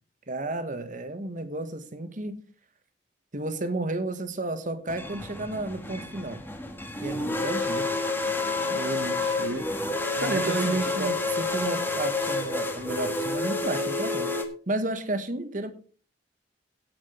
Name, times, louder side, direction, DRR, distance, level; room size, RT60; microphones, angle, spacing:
voice 1, 0.3-2.4 3.3-6.5 7.0-8.0 10.2-14.4 14.7-15.7, right 2 dB, 45° right, 1.3 m, -32 dB
sound 1, 4.9-14.4, left 2 dB, 10° left, 1.5 m, -29 dB
voice 2, 8.7-9.7 10.2-11.2, right 2 dB, 70° right, 1.1 m, -30 dB
17.0 x 6.1 x 4.4 m
head